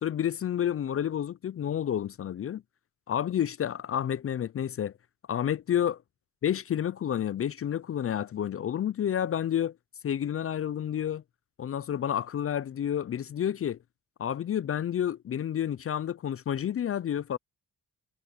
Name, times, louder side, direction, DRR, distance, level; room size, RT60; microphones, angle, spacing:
voice 1, 0.0-2.6 3.1-4.9 5.3-6.0 6.4-9.7 10.0-11.2 11.6-13.8 14.2-17.4, left 9 dB, 40° left, 0.5 m, -30 dB
cardioid pair, 75°, 34 cm